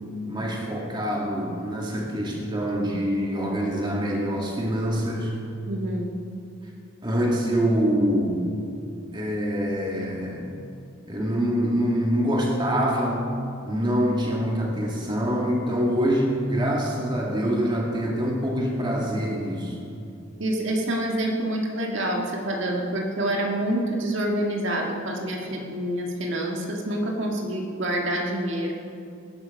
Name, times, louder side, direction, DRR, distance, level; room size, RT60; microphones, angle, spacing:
voice 1, 0.3-5.3 7.0-8.5 9.1-10.5 11.1-13.4 13.6-19.8, equal, 20° right, -1 dB, 2.0 m, -25 dB
voice 2, 5.7-6.0 20.4-28.7, right 1 dB, 60° right, 0 dB, 1.8 m, -27 dB
18.5 x 11.0 x 5.4 m, 2.5 s
head